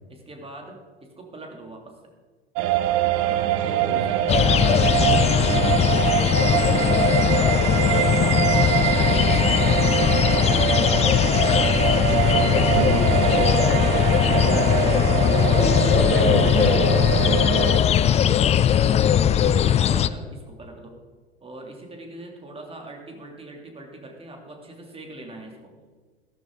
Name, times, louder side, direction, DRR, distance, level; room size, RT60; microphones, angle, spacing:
voice 1, 0.1-2.0 3.5-4.3 4.6-5.0 5.8-6.0 6.3-8.1 8.3-11.5 16.0-16.1 16.5-17.0 18.6-21.0 21.4-25.7, right 2 dB, 20° right, 2 dB, 3.0 m, -42 dB
sound 1, 2.5-17.8, right 12 dB, 50° right, 1.0 m, -24 dB
voice 2, 3.1-4.2 5.2-5.7 11.5-11.7 12.1-13.7 14.1-14.5 15.6-17.3, right 2 dB, 75° right, 1 dB, 4.0 m, -30 dB
sound 2, 4.3-20.1, left 9 dB, 20° left, 0.4 m, -19 dB
15.5 x 13.0 x 3.9 m, 1.4 s
figure-of-eight pair, 80°, 32 cm